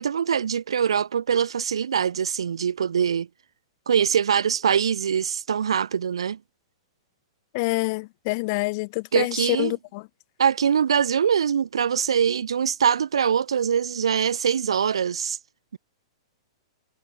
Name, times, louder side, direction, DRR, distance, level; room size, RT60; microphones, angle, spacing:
voice 1, 0.0-3.3 3.9-6.4 9.1-9.7 10.4-15.4, right 7 dB, 80° right, 2.0 m, -23 dB
voice 2, 7.5-10.1, left 27 dB, 45° left, 4.1 m, -27 dB
hypercardioid pair, 120°, 3 cm